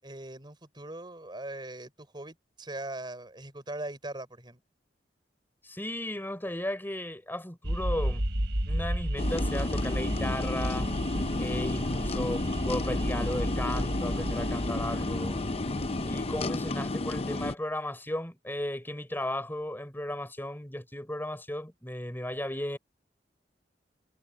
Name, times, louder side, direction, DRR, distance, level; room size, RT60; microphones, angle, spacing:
voice 1, 0.0-4.6, right 2 dB, 25° right, 5.4 m, -40 dB
voice 2, 5.6-8.2 8.7-10.9 11.4-15.4 16.1-22.8, left 1 dB, 10° left, 4.0 m, -35 dB
sound 1, 7.6-16.9, right 1 dB, 70° right, 3.8 m, -33 dB
sound 2, 9.2-17.6, left 2 dB, 35° left, 0.6 m, -32 dB
head